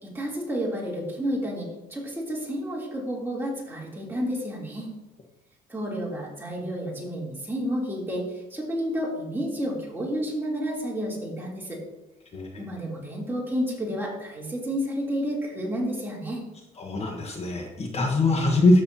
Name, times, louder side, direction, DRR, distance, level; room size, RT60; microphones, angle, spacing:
voice 1, 0.0-4.9 5.7-11.8 12.6-16.4, equal, 10° right, -4 dB, 3.1 m, -30 dB
voice 2, 16.8-18.8, left 2 dB, 40° left, 1 dB, 1.3 m, -22 dB
13.0 x 6.7 x 2.8 m, 1.0 s
cardioid pair, 110°, 17 cm